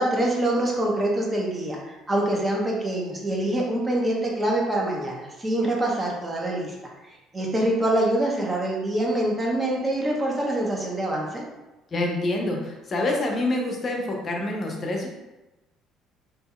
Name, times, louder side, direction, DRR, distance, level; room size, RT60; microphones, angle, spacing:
voice 1, 0.0-6.7 7.1-11.4, right 1 dB, 25° right, -2 dB, 0.8 m, -25 dB
voice 2, 11.9-15.1, left 2 dB, 40° left, 0 dB, 0.7 m, -26 dB
2.7 x 2.7 x 2.4 m, 1.0 s
supercardioid pair, 80°, 0 cm